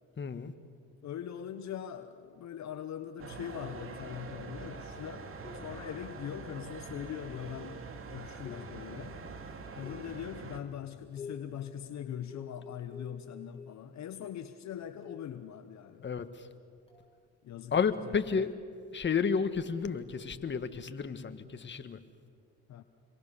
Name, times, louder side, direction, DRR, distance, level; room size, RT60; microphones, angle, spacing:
voice 1, 0.2-0.5 16.0-16.3 17.7-18.5 18.9-22.0, left 6 dB, 35° left, 9 dB, 1.6 m, -31 dB
voice 2, 1.0-5.3 5.5-9.2 9.7-16.0 17.4-17.8 18.1-18.2 22.7-22.8, left 9 dB, 60° left, 10 dB, 1.1 m, -41 dB
sound 1, 3.2-10.6, right 4 dB, 45° right, 2.7 m, -44 dB
sound 2, 5.4-6.0 7.2-7.6 8.4-9.1 9.8-10.3 11.2-11.6 12.3-13.9 15.0-15.4 16.9-17.1, left 5 dB, 20° left, 7.4 m, -49 dB
28.0 x 23.0 x 7.1 m, 2.2 s
supercardioid pair, 75°, 31 cm